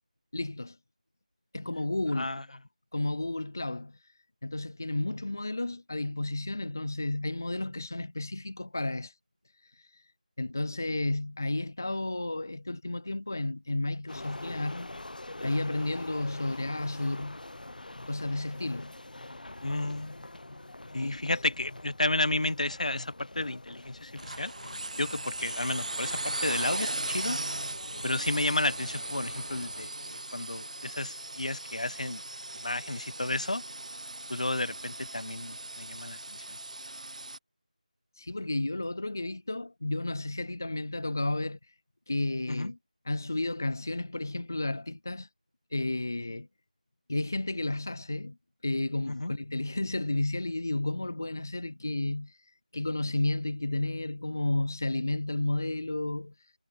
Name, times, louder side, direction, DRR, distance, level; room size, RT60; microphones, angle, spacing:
voice 1, 0.3-0.8 1.5-2.3 2.9-4.1 4.4-9.2 9.6-10.1 10.4-14.9 15.4-17.4 18.1-19.0 21.0-21.3 38.1-41.7 42.1-42.8 43.0-45.3 45.7-46.5 47.1-48.4 48.6-56.5, left 2 dB, 25° left, 0.4 m, -32 dB
sound 1, 14.1-29.9, left 2 dB, 85° left, 0.9 m, -45 dB
voice 2, 19.6-20.2 20.9-24.5 25.0-27.4 28.0-32.2 32.6-33.6 34.3-36.6 42.5-42.7 49.1-49.3, left 2 dB, 60° left, 1.0 m, -32 dB
sound 2, 24.2-37.4, right 2 dB, 60° right, 1.0 m, -38 dB
figure-of-eight pair, 180°, 4 cm